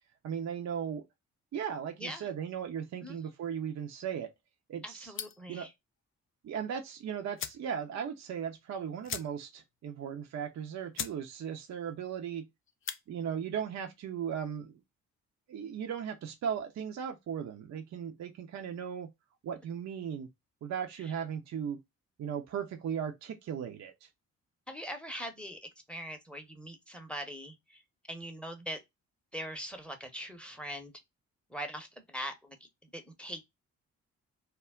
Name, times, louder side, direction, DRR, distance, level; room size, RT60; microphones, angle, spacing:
voice 1, 0.2-1.0 1.5-4.3 4.7-5.1 5.5-5.7 6.4-12.5 13.1-14.7 15.5-19.1 19.4-20.3 20.6-21.8 22.2-24.1, right 8 dB, 45° right, 0.6 m, -37 dB
voice 2, 4.8-5.7 24.7-27.8 28.1-28.8 29.3-30.9 31.5-32.6 32.9-33.4, equal, 5° left, 0.8 m, -41 dB
sound 1, 5.1-5.5 6.9-7.0 7.3-7.7 8.1-8.2 8.4-8.5 9.0-9.6 10.0-10.1 10.6-10.7 10.9-11.2 11.6-11.9 12.7-13.0, left 8 dB, 35° left, 0.4 m, -40 dB
2.2 x 2.1 x 3.5 m
hypercardioid pair, 40°, 40 cm